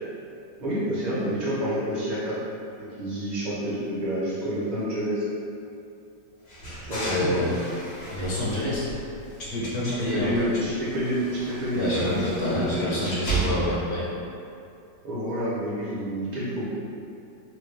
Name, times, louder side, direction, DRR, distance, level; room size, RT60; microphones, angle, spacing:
voice 1, 0.6-2.3 3.0-5.2 6.8-7.5 10.1-12.9 15.0-16.6, equal, 40° right, -9 dB, 0.6 m, -28 dB
sound 1, 6.5-9.6 10.0-14.0, right 2 dB, 90° left, 2.2 m, -34 dB
voice 2, 7.0-7.6 8.1-8.9 9.4-10.6 11.7-14.1, left 1 dB, 65° left, -7 dB, 1.1 m, -27 dB
4.3 x 2.2 x 3.2 m, 2.6 s
omnidirectional pair, 2.0 m